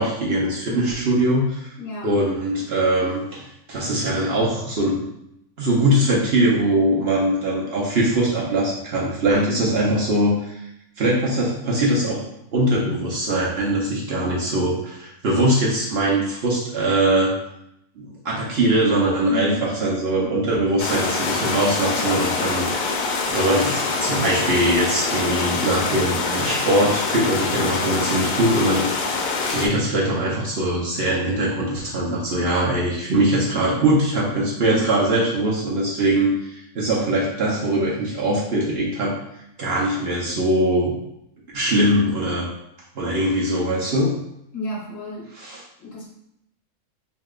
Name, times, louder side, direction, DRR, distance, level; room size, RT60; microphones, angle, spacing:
voice 1, 0.0-1.7 2.0-5.0 5.6-10.6 11.0-12.2 12.5-17.4 18.0-29.2 29.5-39.2 39.6-40.9 41.5-42.5 42.9-44.2 45.4-45.6, right 1 dB, 50° right, -5 dB, 0.8 m, -21 dB
voice 2, 0.7-1.0 1.8-2.2 19.3-19.8 34.7-35.1 44.5-45.3 45.8-46.1, left 1 dB, 60° left, -3 dB, 1.4 m, -32 dB
Burbling River, 20.8-29.7, left 4 dB, 80° left, 1.1 m, -25 dB
4.8 x 2.8 x 2.4 m, 0.80 s
omnidirectional pair, 1.6 m